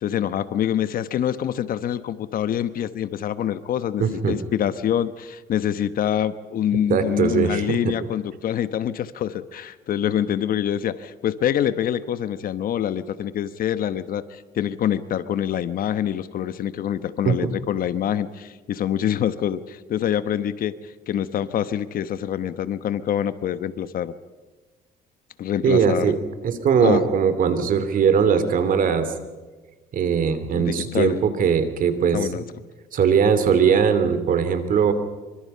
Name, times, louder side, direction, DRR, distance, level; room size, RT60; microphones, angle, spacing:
voice 1, 0.0-20.8 21.1-24.1 25.4-26.1 26.8-27.0 30.5-31.2 32.1-32.4, left 10 dB, 60° left, 13 dB, 1.1 m, -25 dB
voice 2, 4.0-4.4 6.9-7.9 17.2-17.5 25.6-26.2 26.4-29.1 29.9-32.4 32.9-34.9, right 7 dB, 55° right, 10 dB, 3.0 m, -20 dB
25.5 x 24.5 x 5.6 m, 1.3 s
cardioid pair, 110°, 17 cm